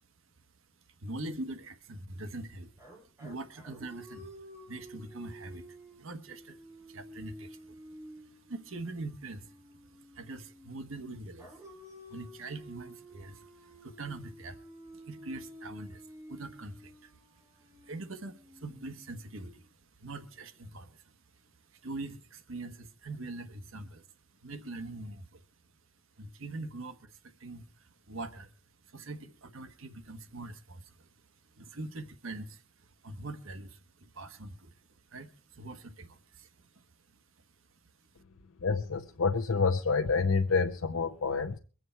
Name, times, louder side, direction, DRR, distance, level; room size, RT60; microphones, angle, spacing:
voice 1, 1.0-2.7 3.2-4.3 4.7-6.6 6.8-7.8 8.5-9.5 10.1-11.5 12.1-14.6 14.9-16.0 16.3-17.1 17.8-19.7 20.0-21.0 21.7-24.0 24.4-25.4 26.2-28.5 28.9-31.1 31.6-32.6 33.0-34.7 35.1-36.8, right 2 dB, 85° right, 1.2 m, -43 dB
sound 1, 2.8-10.8 11.4-19.5, equal, 15° right, 3.0 m, -51 dB
voice 2, 38.6-41.6, left 4 dB, 85° left, 0.7 m, -28 dB
23.0 x 7.9 x 4.5 m
head